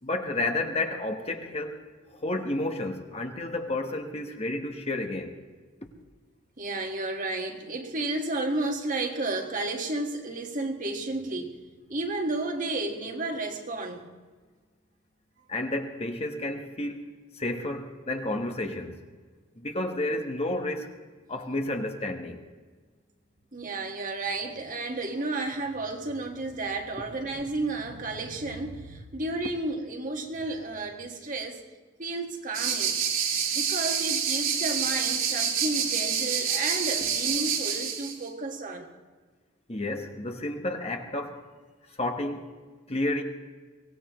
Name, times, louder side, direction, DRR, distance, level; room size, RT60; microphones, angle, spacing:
voice 1, 0.0-5.4 15.5-19.0 19.6-20.9 21.3-22.4 39.7-41.4 42.0-42.5 42.9-43.2, left 2 dB, 30° left, 1.2 m, -31 dB
voice 2, 6.6-11.6 11.9-14.1 23.5-31.6 32.0-33.0 33.5-38.9, right 2 dB, 40° right, 1.7 m, -32 dB
sound 1, 32.5-38.1, right 7 dB, 80° right, 2.5 m, -27 dB
23.5 x 18.0 x 3.1 m
head